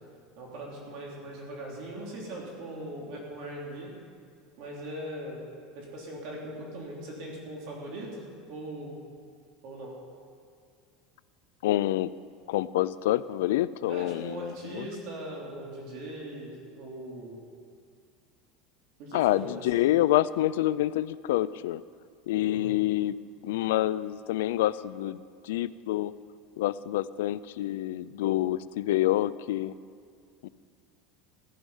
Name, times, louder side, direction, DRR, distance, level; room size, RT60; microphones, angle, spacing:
voice 1, 0.4-3.9 4.6-5.4 5.7-9.0 9.6-9.9 13.9-17.5 19.0-19.8 22.4-22.7, right 1 dB, 55° right, -2 dB, 3.2 m, -40 dB
voice 2, 11.6-12.1 12.5-14.9 19.1-21.8 22.3-23.2 23.4-26.1 26.6-29.7 30.4-30.5, left 14 dB, 90° left, 17 dB, 0.4 m, -27 dB
14.5 x 10.5 x 5.6 m, 2.2 s
supercardioid pair, 160°, 0 cm